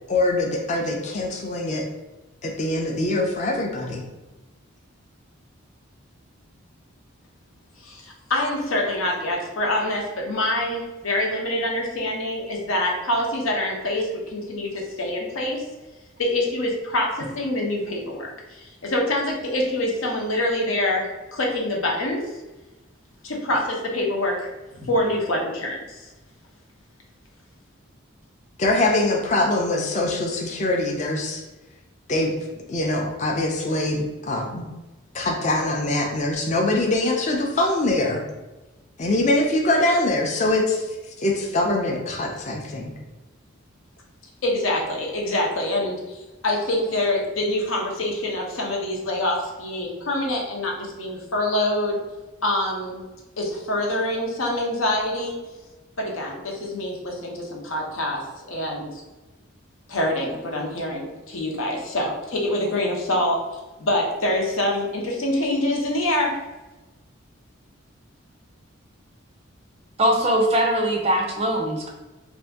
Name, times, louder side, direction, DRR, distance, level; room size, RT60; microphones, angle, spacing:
voice 1, 0.1-1.8 2.4-4.0 28.6-31.4 32.1-32.3 32.7-34.6 35.1-38.2 39.0-42.9, left 2 dB, 35° left, 1 dB, 0.4 m, -23 dB
voice 2, 7.8-15.6 16.2-21.1 21.3-22.2 23.2-24.5 24.8-26.0 44.4-52.0 52.4-53.0 53.4-55.3 56.0-58.2 58.5-59.0 59.9-63.4 63.8-66.4, left 1 dB, 80° left, -1 dB, 0.8 m, -25 dB
voice 3, 70.0-71.9, right 1 dB, 30° right, 2 dB, 0.4 m, -21 dB
2.7 x 2.5 x 3.4 m, 1.1 s
head